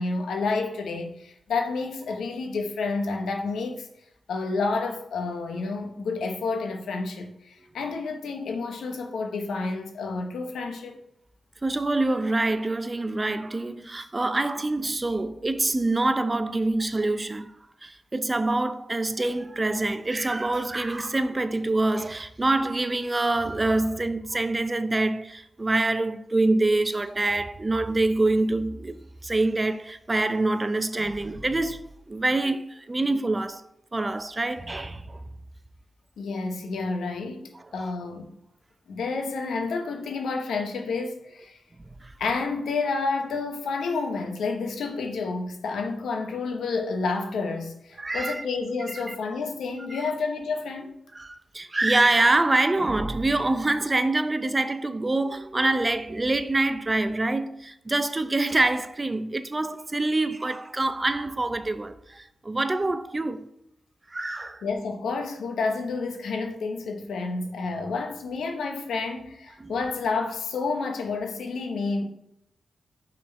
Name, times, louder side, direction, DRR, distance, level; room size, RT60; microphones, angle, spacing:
voice 1, 0.0-3.9 4.3-11.0 36.2-38.3 38.9-41.6 42.2-51.0 64.6-72.0, left 4 dB, 85° left, 1.1 m, -30 dB
voice 2, 11.6-17.5 17.8-33.6 33.9-35.2 37.5-37.6 42.0-42.1 48.0-48.4 48.9-49.2 49.9-50.1 51.1-63.5 64.1-64.6 69.6-69.7, right 2 dB, 25° right, 0.6 m, -25 dB
5.4 x 4.4 x 5.6 m
cardioid pair, 65°, 0 cm